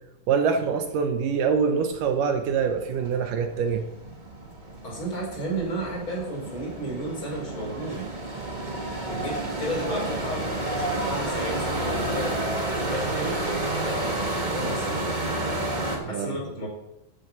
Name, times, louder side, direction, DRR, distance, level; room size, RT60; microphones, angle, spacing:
voice 1, 0.3-3.9 16.0-16.4, right 6 dB, 75° right, 7 dB, 2.4 m, -25 dB
sound 1, 1.7-1.8 2.1-16.0, right 2 dB, 55° right, 0.5 m, -30 dB
voice 2, 4.8-8.0 9.1-12.4 12.7-13.4 13.8-14.0 14.5-15.0 16.1-16.7, right 1 dB, 35° left, -3 dB, 5.4 m, -33 dB
13.0 x 7.7 x 6.0 m, 0.88 s
omnidirectional pair, 4.0 m